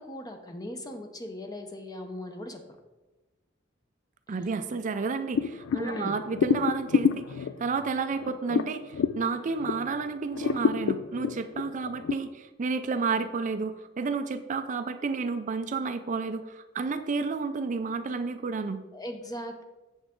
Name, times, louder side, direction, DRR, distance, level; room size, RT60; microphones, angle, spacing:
voice 1, 0.0-2.6 4.5-4.6 5.7-6.2 18.9-19.6, left 1 dB, 20° left, 5 dB, 0.8 m, -38 dB
voice 2, 4.3-18.8, right 4 dB, 40° right, 9 dB, 0.4 m, -31 dB
sound 1, 5.3-10.0 10.3-12.1, left 6 dB, 85° left, 0.4 m, -28 dB
8.1 x 7.0 x 3.7 m, 1.1 s
head